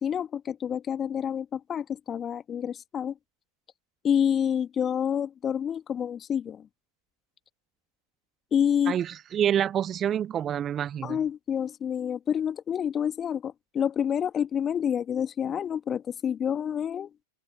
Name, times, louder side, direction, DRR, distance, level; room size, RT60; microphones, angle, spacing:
voice 1, 0.0-3.1 4.0-6.7 8.5-9.0 11.0-17.1, left 8 dB, 25° left, 1.9 m, -28 dB
voice 2, 8.9-11.2, right 9 dB, 30° right, 0.6 m, -27 dB
open air
figure-of-eight pair, 95°, 0 cm